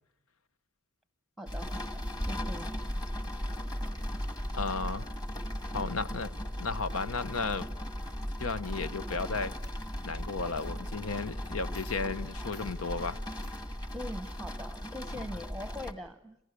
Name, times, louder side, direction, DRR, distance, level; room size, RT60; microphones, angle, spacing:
voice 1, 1.4-2.8 13.9-16.4, equal, ahead, 1.0 m, -42 dB
sound 1, 1.5-15.9, equal, 20° left, 2.3 m, -37 dB
voice 2, 4.5-5.1 5.7-7.7 8.4-9.5 10.0-13.2, left 4 dB, 90° left, 0.9 m, -34 dB
Coin (dropping), 9.6-10.2 10.6-10.7 11.4-11.5 11.7-12.0 12.5-12.7 13.4-13.6, left 3 dB, 55° left, 6.0 m, -55 dB
30.0 x 28.0 x 6.6 m
head